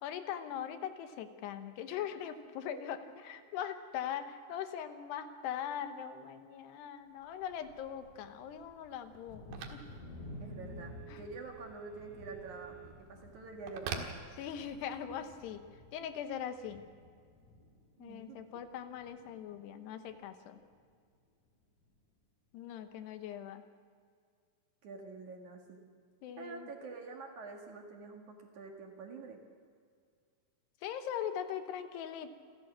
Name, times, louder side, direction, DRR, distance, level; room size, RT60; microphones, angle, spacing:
voice 1, 0.0-3.0 3.2-9.8 11.1-11.2 14.0-14.1 14.4-15.6 15.9-16.8 18.0-20.6 22.5-23.6 26.2-26.7 30.8-32.3, left 9 dB, 80° left, 8 dB, 3.1 m, -41 dB
Telephone, 7.1-15.0, right 6 dB, 75° right, 3.8 m, -48 dB
Thunder, 9.3-18.7 19.0-19.7 20.1-20.2 20.6-20.8, left 1 dB, 55° left, 5.9 m, -52 dB
voice 2, 10.4-14.2 18.0-18.5 24.8-25.8 26.4-29.4, right 3 dB, 55° right, 1 dB, 2.9 m, -47 dB
28.0 x 14.5 x 7.3 m, 2.1 s
omnidirectional pair, 4.9 m